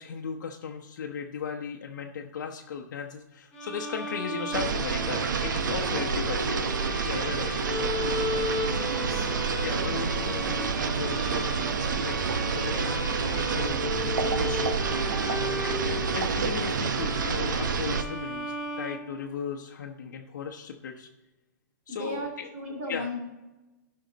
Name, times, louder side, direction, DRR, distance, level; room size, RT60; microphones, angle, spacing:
voice 1, 0.0-7.9 9.6-12.2 12.5-14.7 15.0-21.1 21.9-22.5 22.9-23.1, left 6 dB, 70° left, 1 dB, 0.9 m, -37 dB
Bowed string instrument, 3.5-19.5, left 2 dB, 10° left, 2.6 m, -36 dB
sound 1, 4.5-18.0, right 5 dB, 75° right, 0.9 m, -28 dB
voice 2, 8.6-9.3 21.9-23.2, left 1 dB, 45° right, -2 dB, 3.1 m, -36 dB
13.0 x 5.7 x 4.0 m, 1.1 s
hypercardioid pair, 165°, 10 cm